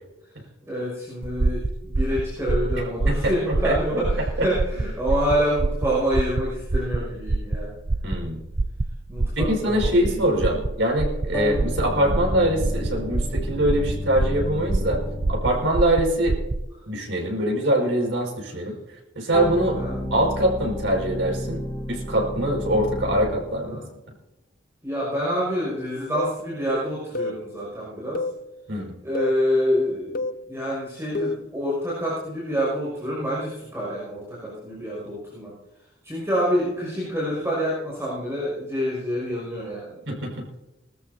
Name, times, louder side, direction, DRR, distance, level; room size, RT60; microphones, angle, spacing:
voice 1, 0.7-7.7 8.1-8.3 9.1-10.6 11.7-11.8 19.7-19.9 23.6-23.9 24.8-28.2 29.0-35.5 36.0-40.0, equal, 15° right, -6 dB, 6.2 m, -27 dB
sound 1, 1.2-16.7, right 2 dB, 30° right, 0.4 m, -26 dB
voice 2, 3.6-4.0 8.0-8.4 9.4-15.0 15.3-16.4 16.9-18.7 19.2-19.8 20.1-21.6 21.9-23.8 28.7-28.9 40.1-40.3, right 1 dB, 75° right, 0 dB, 5.6 m, -23 dB
sound 2, 11.3-15.8 19.3-23.5, left 1 dB, 15° left, 3.7 m, -32 dB
sound 3, 26.2-26.4 27.2-27.4 28.2-28.4 29.2-29.4 30.2-30.4 31.2-31.5, left 2 dB, 50° left, 0.6 m, -28 dB
21.5 x 13.5 x 2.8 m, 0.95 s
head